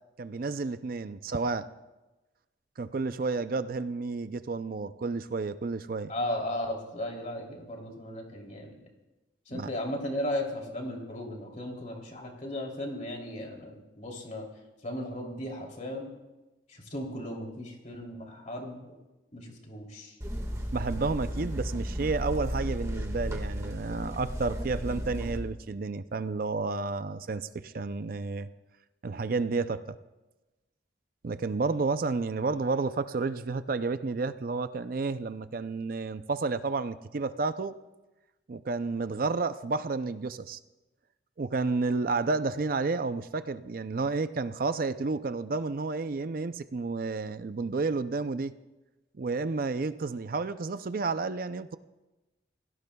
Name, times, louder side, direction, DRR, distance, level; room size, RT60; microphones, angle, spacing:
voice 1, 0.2-1.7 2.8-6.1 9.5-9.7 20.7-28.5 29.0-30.0 31.2-37.8 38.5-40.6 41.4-48.5 49.2-51.8, right 3 dB, 50° right, 12 dB, 0.4 m, -31 dB
voice 2, 6.1-8.7 9.5-14.5 14.8-16.1 16.7-18.9 19.3-20.2, left 1 dB, 40° left, 0 dB, 2.9 m, -36 dB
sound 1, 20.2-25.4, equal, 15° right, 1.6 m, -34 dB
27.0 x 17.5 x 2.3 m, 1.1 s
head